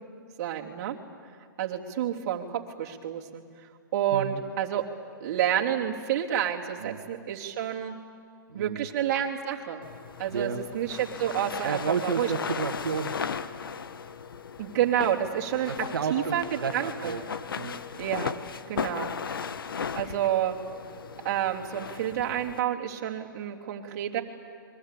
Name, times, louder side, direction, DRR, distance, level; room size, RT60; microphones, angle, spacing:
voice 1, 0.4-1.0 1.6-3.4 3.9-4.8 5.2-8.0 8.5-9.8 10.2-12.3 14.6-15.7 16.1-16.4 16.7-17.1 18.0-18.3 18.7-19.1 20.0-20.6 21.2-24.2, right 10 dB, 45° right, -1 dB, 3.1 m, -29 dB
voice 2, 4.1-4.4 6.8-7.0 8.5-8.9 10.3-10.6 11.6-13.2 15.7-17.2 17.5-17.7, right 6 dB, 75° right, 3 dB, 1.7 m, -31 dB
sound 1, 9.8-22.6, left 6 dB, 80° left, 1.3 m, -37 dB
28.5 x 23.0 x 8.5 m, 2.3 s
hypercardioid pair, 140°, 12 cm